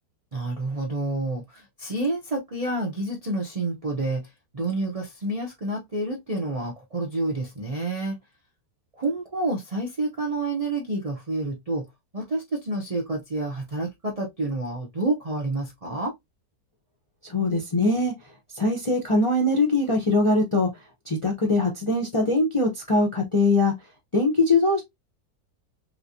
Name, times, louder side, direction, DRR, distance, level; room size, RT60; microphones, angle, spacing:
voice 1, 0.3-8.2 9.0-11.9 12.1-16.1, right 2 dB, 60° right, 0.3 m, -29 dB
voice 2, 17.2-18.1 18.5-20.7 21.1-23.7 24.1-24.8, left 2 dB, 35° left, 0.4 m, -22 dB
3.2 x 3.1 x 2.6 m
omnidirectional pair, 1.9 m